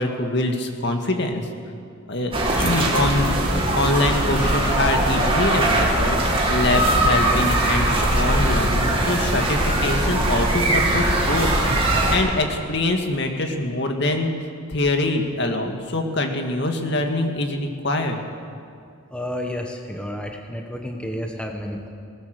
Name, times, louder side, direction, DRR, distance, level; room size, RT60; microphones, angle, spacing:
voice 1, 0.0-1.5 2.1-11.5 11.8-14.3 14.7-18.2, left 2 dB, 55° left, 4 dB, 2.0 m, -24 dB
sound 1, 2.3-12.2, right 1 dB, 25° right, 2.7 m, -20 dB
voice 2, 19.1-21.9, equal, 5° left, 2 dB, 1.2 m, -31 dB
21.0 x 19.0 x 6.7 m, 2.4 s
head